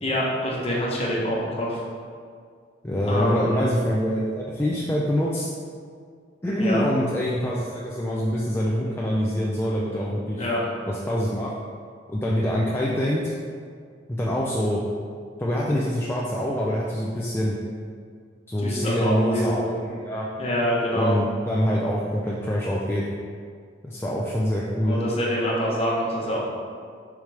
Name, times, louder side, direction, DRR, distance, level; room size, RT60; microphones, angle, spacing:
voice 1, 0.0-1.8 3.0-3.7 6.6-6.8 10.4-10.6 18.6-19.5 20.4-21.1 24.8-26.4, equal, 30° left, -4 dB, 1.1 m, -25 dB
voice 2, 2.8-5.5 6.4-10.5 10.9-11.5 12.1-13.2 14.1-14.8 15.4-17.6 18.5-20.3 20.9-23.0 23.8-25.0, equal, 10° left, -5 dB, 0.4 m, -25 dB
6.4 x 5.0 x 3.4 m, 2.1 s
head